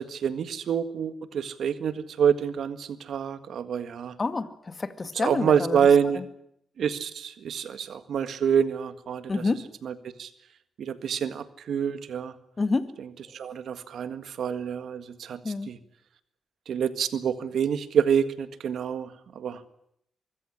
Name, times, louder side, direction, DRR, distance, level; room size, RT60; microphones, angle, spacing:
voice 1, 0.0-4.1 5.1-6.2 6.8-9.3 9.8-10.3 10.8-12.3 13.0-15.8 16.7-19.6, right 7 dB, 75° right, 12 dB, 1.7 m, -27 dB
voice 2, 4.2-5.9 6.1-6.2 9.3-9.6 12.6-12.9 15.4-15.7, left 3 dB, 35° left, 11 dB, 2.1 m, -28 dB
24.0 x 15.5 x 9.9 m, 0.72 s
cardioid pair, 60°, 0 cm